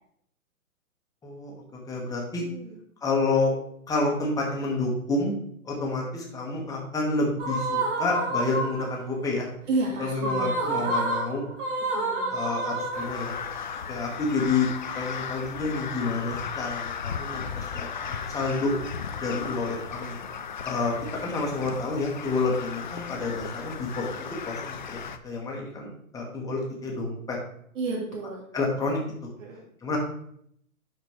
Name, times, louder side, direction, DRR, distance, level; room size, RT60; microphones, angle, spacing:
voice 1, 1.2-2.4 3.0-3.5 3.9-5.4 5.6-9.5 10.0-11.5 12.3-13.4 13.9-14.7 14.9-18.7 19.2-20.2 20.6-20.9 21.2-27.4 28.5-29.3 29.8-30.0, left 3 dB, 10° left, -2 dB, 1.5 m, -29 dB
voice 2, 2.4-2.8 9.7-10.9 11.9-12.4 19.3-19.6 27.8-28.4 29.4-29.6, right 3 dB, 60° right, -1 dB, 2.0 m, -32 dB
female vocal clip, 7.4-9.1 10.1-13.5, right 2 dB, 35° right, 2.3 m, -29 dB
Crow, 12.9-25.2, left 6 dB, 35° left, 0.4 m, -36 dB
11.5 x 4.4 x 3.3 m, 0.67 s
figure-of-eight pair, 125°, 43 cm